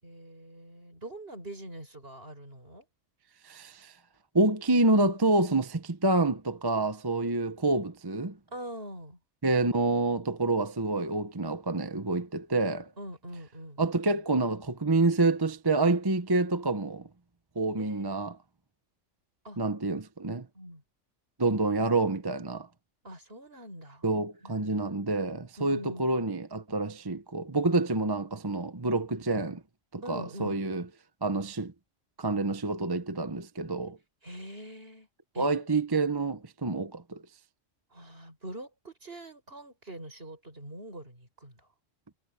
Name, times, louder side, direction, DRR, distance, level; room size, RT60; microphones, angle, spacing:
voice 1, 0.0-2.9 8.5-9.2 13.0-13.8 17.8-18.2 19.4-19.6 20.5-20.8 23.0-24.1 24.4-25.0 25.6-26.0 30.0-30.6 34.2-35.1 35.3-35.5 37.9-41.7, right 1 dB, 50° right, 7.8 m, -44 dB
voice 2, 3.4-3.9 4.3-8.4 9.4-12.9 13.8-17.1 17.6-18.3 19.6-20.5 21.4-22.7 24.0-29.6 29.9-30.8 31.2-31.7 32.2-34.0 35.4-37.2, right 2 dB, 20° right, 0.9 m, -27 dB
omnidirectional pair, 1.3 m